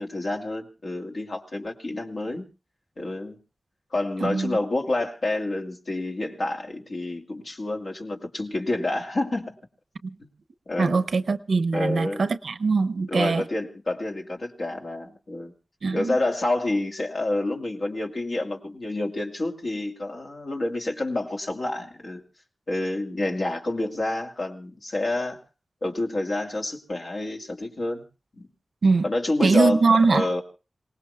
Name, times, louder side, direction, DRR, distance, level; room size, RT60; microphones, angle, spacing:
voice 1, 0.0-2.5 3.0-3.4 3.9-9.6 10.2-10.3 10.7-11.0 11.7-12.2 13.1-15.5 15.9-22.2 22.7-25.4 25.8-28.0 28.3-28.5 29.0-29.8 30.1-30.4, left 2 dB, 70° left, 2.5 m, -28 dB
voice 2, 4.2-4.6 10.0-10.1 10.8-13.4 15.8-16.2 28.8-29.1 29.4-30.3, right 4 dB, 90° right, 0.7 m, -22 dB
27.5 x 18.5 x 2.3 m
cardioid pair, 50°, 0 cm